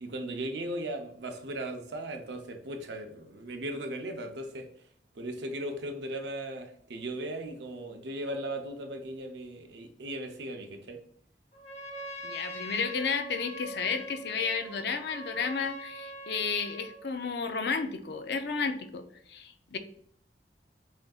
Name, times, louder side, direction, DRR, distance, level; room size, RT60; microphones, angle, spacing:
voice 1, 0.0-4.7 5.2-11.0, right 1 dB, 80° right, 5 dB, 0.6 m, -37 dB
Trumpet, 11.5-17.0, right 1 dB, 40° left, 0.7 m, -43 dB
voice 2, 12.2-19.0 19.3-19.8, left 5 dB, 65° left, 9 dB, 0.4 m, -32 dB
6.1 x 2.6 x 2.3 m, 0.67 s
head